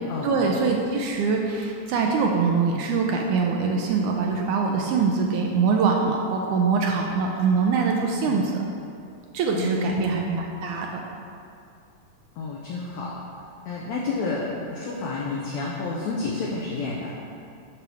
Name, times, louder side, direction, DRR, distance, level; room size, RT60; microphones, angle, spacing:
voice 1, 0.2-8.6 9.3-11.0, right 5 dB, 80° right, 1 dB, 1.8 m, -23 dB
voice 2, 9.5-10.2 12.4-13.2 13.7-17.2, left 3 dB, 75° left, -3 dB, 1.6 m, -30 dB
10.0 x 3.5 x 6.2 m, 2.4 s
omnidirectional pair, 4.1 m